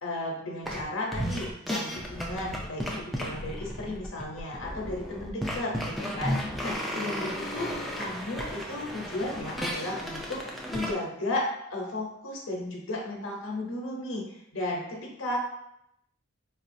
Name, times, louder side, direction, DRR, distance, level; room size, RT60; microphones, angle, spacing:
voice 1, 0.0-14.2 14.5-15.4, left 2 dB, 80° left, -2 dB, 0.8 m, -34 dB
sound 1, 0.7-0.8 1.1-10.9, equal, ahead, 0.3 m, -34 dB
4.2 x 2.3 x 2.6 m, 0.78 s
head